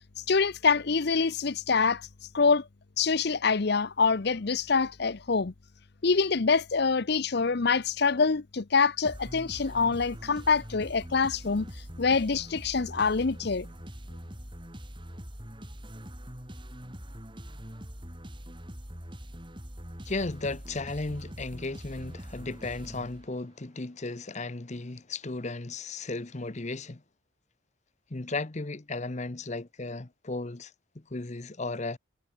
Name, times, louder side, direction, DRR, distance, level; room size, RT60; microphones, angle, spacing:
voice 1, 0.2-2.1 2.3-2.6 3.0-5.5 6.0-13.6, left 5 dB, 55° left, 0.7 m, -25 dB
sound 1, 9.0-23.6, equal, 25° right, 6.3 m, -43 dB
voice 2, 20.0-27.0 28.1-32.0, left 3 dB, 35° left, 0.9 m, -35 dB
head